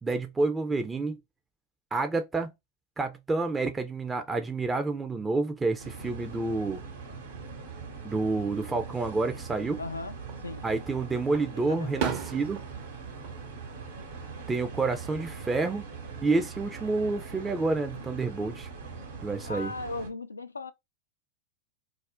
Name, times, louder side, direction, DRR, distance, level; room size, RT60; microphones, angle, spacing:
voice 1, 0.0-1.2 1.9-2.5 3.0-6.8 8.0-9.8 10.6-12.6 14.5-15.8 16.2-18.7 19.2-19.7, right 3 dB, 15° right, 0.4 m, -29 dB
sound 1, 5.8-20.1, right 5 dB, 75° right, 1.0 m, -42 dB
voice 2, 9.8-10.2 10.4-10.7 11.7-12.2 19.4-20.7, left 3 dB, 90° left, 0.3 m, -37 dB
Fireworks, 10.2-10.9 11.3-14.5 14.8-15.4 16.9-17.7, right 7 dB, 55° right, 0.8 m, -38 dB
2.4 x 2.1 x 3.5 m
hypercardioid pair, 95°, 0 cm